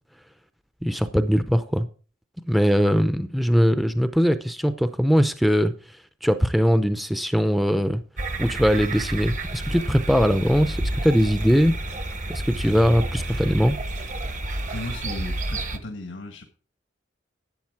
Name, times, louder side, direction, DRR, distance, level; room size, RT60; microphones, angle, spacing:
voice 1, 0.8-1.9 2.5-5.7 6.2-8.0 8.4-10.8 11.0-11.7 12.3-13.8, equal, ahead, 0.5 m, -21 dB
sound 1, 8.2-15.8, right 1 dB, 40° right, 1.0 m, -30 dB
sound 2, 10.1-15.3, right 3 dB, 75° right, 6.4 m, -50 dB
voice 2, 14.7-16.4, left 2 dB, 85° left, 1.5 m, -35 dB
12.0 x 8.0 x 4.7 m
head